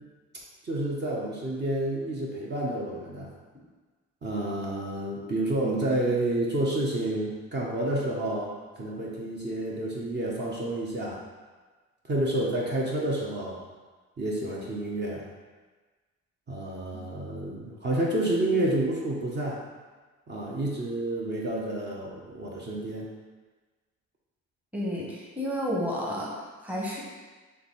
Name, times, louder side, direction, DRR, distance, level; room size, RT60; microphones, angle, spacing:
voice 1, 0.6-3.3 4.2-11.2 12.0-13.6 14.2-15.2 16.5-19.6 20.3-23.1, right 1 dB, 35° right, -4 dB, 0.8 m, -29 dB
voice 2, 24.7-27.0, equal, 5° right, -3 dB, 0.9 m, -31 dB
3.3 x 3.2 x 4.2 m, 1.3 s
cardioid pair, 90°, 30 cm